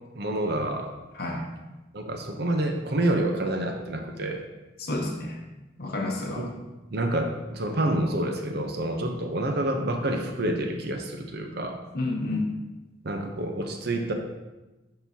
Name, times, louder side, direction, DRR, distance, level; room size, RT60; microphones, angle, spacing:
voice 1, 0.1-0.9 1.9-4.4 6.4-6.5 6.9-11.8 13.0-14.1, right 1 dB, 55° right, 4 dB, 0.7 m, -28 dB
voice 2, 4.8-5.3 5.8-6.4 11.9-12.5, left 2 dB, 50° left, -1 dB, 0.8 m, -29 dB
10.5 x 3.8 x 2.8 m, 1.1 s
head